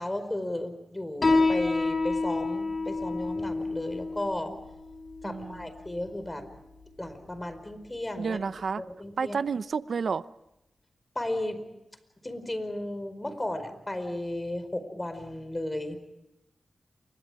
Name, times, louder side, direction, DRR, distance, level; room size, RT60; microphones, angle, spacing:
voice 1, 0.0-4.5 5.2-6.5 7.0-8.4 8.8-9.4 11.1-11.6 12.2-16.0, left 1 dB, 25° left, 11 dB, 4.7 m, -34 dB
Piano, 1.2-8.3, left 3 dB, 50° left, 4.9 m, -30 dB
voice 2, 5.2-5.7 8.2-8.8 9.2-10.3, right 5 dB, 75° right, 15 dB, 0.7 m, -30 dB
28.5 x 25.0 x 4.9 m, 0.91 s
cardioid pair, 50°, 0 cm